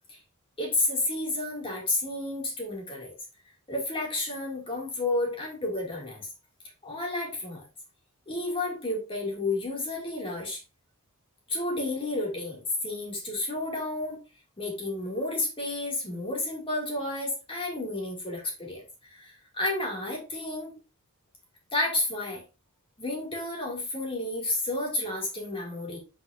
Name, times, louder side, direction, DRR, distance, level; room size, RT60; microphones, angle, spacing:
voice 1, 0.6-3.1 3.7-6.3 6.8-7.6 8.3-10.6 11.5-14.2 14.6-20.7 21.7-22.4 23.0-26.0, left 2 dB, 25° left, -2 dB, 2.5 m, -31 dB
7.7 x 5.7 x 2.7 m, 0.30 s
head